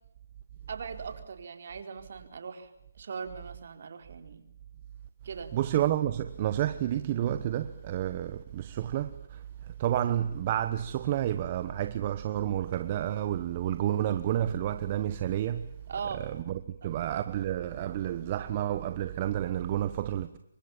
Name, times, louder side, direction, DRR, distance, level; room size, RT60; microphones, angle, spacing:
voice 1, 0.7-4.5 5.2-5.5 15.9-16.2 16.8-16.9, right 6 dB, 55° right, 4.2 m, -40 dB
voice 2, 5.5-15.7 16.1-20.4, right 11 dB, 30° right, 1.1 m, -30 dB
28.0 x 24.0 x 7.3 m
hypercardioid pair, 160°, 0 cm